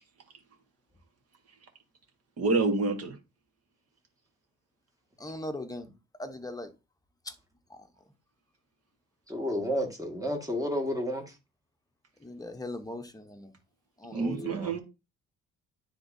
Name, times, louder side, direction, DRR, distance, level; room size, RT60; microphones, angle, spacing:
voice 1, 2.4-3.1 14.1-14.8, right 3 dB, 55° right, 1.8 m, -27 dB
voice 2, 5.2-5.9 6.2-6.7 7.2-7.3 7.7-7.9 12.2-13.5 14.0-14.4, left 1 dB, 10° left, 0.9 m, -39 dB
voice 3, 9.3-11.4 14.1-14.7, equal, 10° right, 1.8 m, -32 dB
9.8 x 3.6 x 2.7 m
cardioid pair, 90°, 30 cm